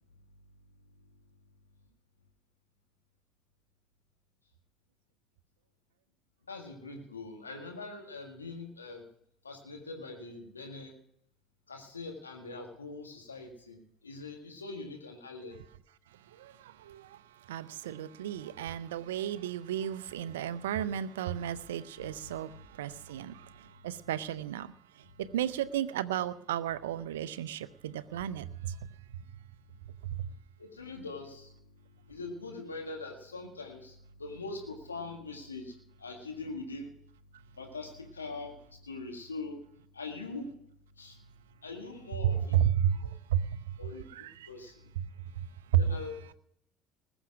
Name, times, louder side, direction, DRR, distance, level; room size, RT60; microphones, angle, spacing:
voice 1, 6.5-9.0 9.4-10.9 11.7-13.8 14.0-15.6 22.0-22.1 22.5-22.7 30.6-31.5 32.1-35.7 36.0-36.9 37.6-38.5 38.8-39.6 39.9-40.5 41.0-41.2 41.6-42.6 43.8-44.0 44.5-44.7 45.8-46.1, left 3 dB, 90° left, 1.9 m, -42 dB
voice 2, 16.4-17.2 17.5-24.7 25.2-28.8 42.2-43.6 44.4-44.5 45.4-45.5 45.7-45.8, right 10 dB, 75° right, 0.6 m, -32 dB
20.0 x 7.1 x 6.1 m
figure-of-eight pair, 60°, 0 cm